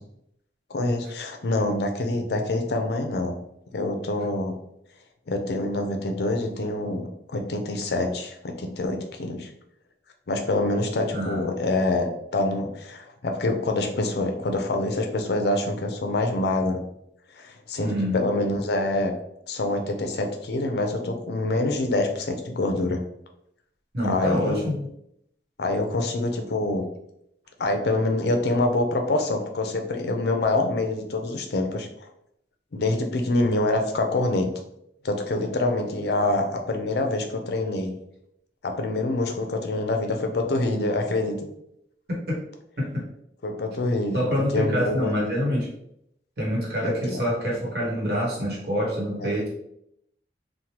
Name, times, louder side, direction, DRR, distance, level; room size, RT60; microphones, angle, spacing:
voice 1, 0.7-3.4 3.7-4.6 5.3-9.5 10.3-16.8 17.3-19.1 19.5-23.0 24.0-24.6 25.6-26.9 27.6-31.9 32.7-34.5 35.0-38.0 38.6-41.5 43.4-45.2 46.8-47.2 49.2-49.4, left 2 dB, 65° left, 4 dB, 0.5 m, -26 dB
voice 2, 11.1-11.5 17.8-18.2 23.9-24.8 42.8-43.0 44.1-45.7 46.4-49.5, equal, 60° right, -4 dB, 1.0 m, -26 dB
3.1 x 2.1 x 2.8 m, 0.76 s
head